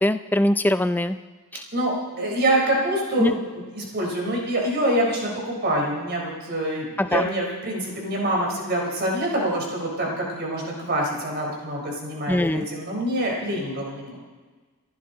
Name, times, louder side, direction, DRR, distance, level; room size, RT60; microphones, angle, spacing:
voice 1, 0.0-1.2 1.5-1.6 3.2-3.3 7.0-7.3 12.3-12.7, left 1 dB, 10° left, 11 dB, 0.4 m, -22 dB
voice 2, 1.7-14.2, right 1 dB, 45° right, -1 dB, 4.0 m, -26 dB
27.5 x 11.5 x 4.0 m, 1.4 s
head